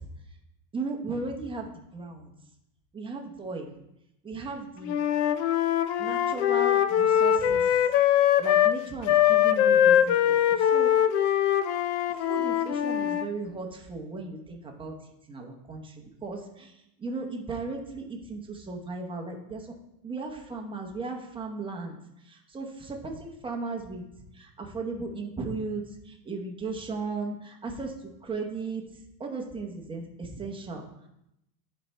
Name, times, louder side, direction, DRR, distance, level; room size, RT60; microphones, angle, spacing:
voice 1, 0.7-2.3 2.9-3.7 4.2-5.0 6.0-7.7 8.4-10.9 12.1-14.9 15.3-19.7 20.0-22.0 22.2-24.0 24.3-28.8 29.2-31.1, right 3 dB, 10° right, 1 dB, 0.9 m, -36 dB
Wind instrument woodwind instrument, 4.8-8.8 9.0-13.3, left 10 dB, 45° left, 0.5 m, -22 dB
11.0 x 4.5 x 3.3 m, 0.83 s
supercardioid pair, 135°, 50 cm